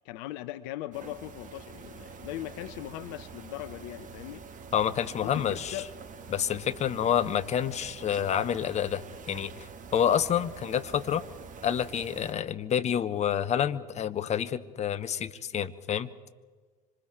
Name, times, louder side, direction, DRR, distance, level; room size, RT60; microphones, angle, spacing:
voice 1, 0.0-4.4 5.2-5.9, left 14 dB, 55° left, 13 dB, 0.8 m, -39 dB
sound 1, 0.9-12.3, right 5 dB, 35° right, 1.8 m, -46 dB
voice 2, 4.7-5.8 6.3-9.5 9.9-11.2 11.6-16.1, left 9 dB, 30° left, 12 dB, 1.0 m, -28 dB
25.5 x 25.5 x 4.6 m, 1.4 s
figure-of-eight pair, 65°, 21 cm